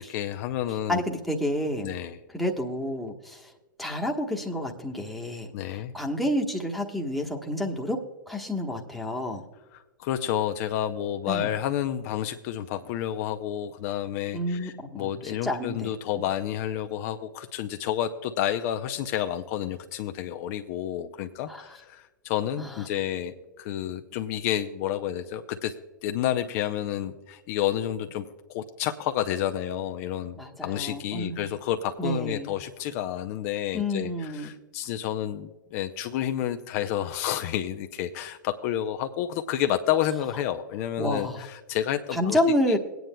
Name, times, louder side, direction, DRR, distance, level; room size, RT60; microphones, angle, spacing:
voice 1, 0.1-1.0 1.8-2.2 5.5-5.9 9.7-25.7 26.0-30.4 30.6-42.4 42.7-42.8, left 11 dB, 50° left, 7 dB, 0.5 m, -30 dB
voice 2, 0.9-1.9 2.3-3.5 3.8-8.0 8.3-9.4 11.3-11.6 14.3-15.9 21.5-21.6 22.6-22.7 30.4-31.5 32.0-32.5 33.7-34.5 41.0-41.4 42.1-42.8, left 1 dB, ahead, 0 dB, 1.1 m, -29 dB
21.5 x 9.2 x 2.2 m, 1.2 s
hypercardioid pair, 105°, 11 cm